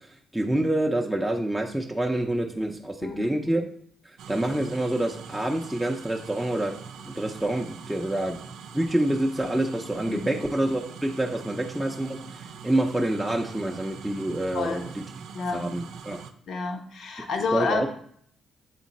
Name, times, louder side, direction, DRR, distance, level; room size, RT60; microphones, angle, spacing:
voice 1, 0.3-3.7 4.3-6.8 7.1-8.4 8.7-14.8 15.5-16.2 17.5-17.9, right 1 dB, 5° right, 0 dB, 0.6 m, -27 dB
voice 2, 3.0-3.4 10.1-10.4 14.5-14.9 15.3-15.7 16.5-17.9, left 4 dB, 65° left, 4 dB, 1.0 m, -29 dB
Boiling Kettle on Gas, 4.2-16.3, right 6 dB, 80° right, 0.5 m, -43 dB
7.3 x 3.7 x 4.1 m, 0.62 s
cardioid pair, 90°, 0 cm